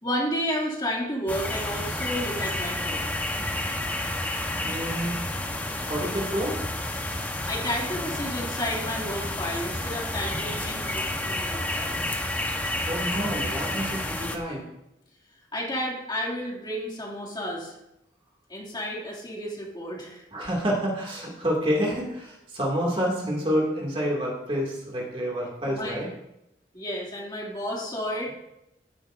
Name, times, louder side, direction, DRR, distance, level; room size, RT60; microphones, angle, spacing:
voice 1, 0.0-3.1 7.5-11.9 15.5-17.7 18.5-20.2 25.7-26.0 26.7-28.3, equal, 25° left, -3 dB, 2.4 m, -31 dB
sound 1, 1.3-14.4, left 1 dB, 10° left, 1.0 m, -30 dB
voice 2, 4.6-5.2 5.9-6.6 12.9-14.6 20.3-26.1, equal, 30° right, -3 dB, 2.3 m, -28 dB
16.0 x 10.5 x 2.6 m, 0.87 s
head